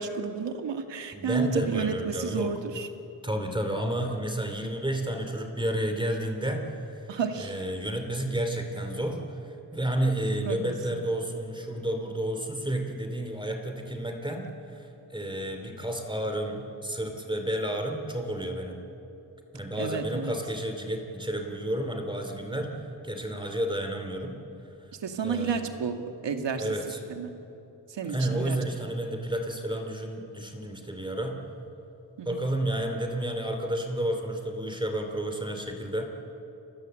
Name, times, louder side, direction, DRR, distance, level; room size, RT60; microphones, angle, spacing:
voice 1, 0.0-2.9 7.1-7.6 10.4-10.6 10.9-11.0 19.8-20.4 25.0-26.7 27.1-27.3 27.9-28.6 32.2-32.4, right 6 dB, 90° right, 5 dB, 2.3 m, -31 dB
voice 2, 1.1-2.5 3.2-18.8 19.5-24.4 25.2-25.7 26.6-27.0 28.0-31.4 32.3-36.1, right 1 dB, 10° right, 4 dB, 2.6 m, -31 dB
29.5 x 22.5 x 7.9 m, 2.9 s
wide cardioid pair, 135°, 42 cm